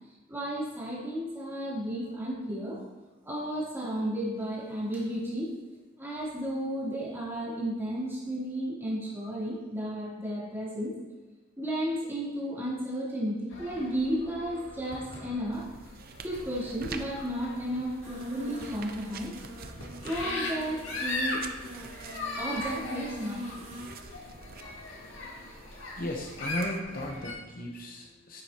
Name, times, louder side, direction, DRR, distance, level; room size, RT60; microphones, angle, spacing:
voice 1, 0.3-2.8 3.2-5.6 6.0-10.9 11.6-15.7 16.2-19.3 20.0-21.4 22.4-23.7, equal, 10° right, -8 dB, 3.0 m, -33 dB
sound 1, 13.5-27.3, left 2 dB, 80° left, 2.0 m, -39 dB
sound 2, 15.5-26.8, right 5 dB, 50° right, 0.6 m, -48 dB
sound 3, 18.0-23.9, equal, 75° right, 1.7 m, -43 dB
voice 2, 26.0-28.4, left 1 dB, 45° left, 1 dB, 0.9 m, -35 dB
10.5 x 7.7 x 2.9 m, 1.2 s
head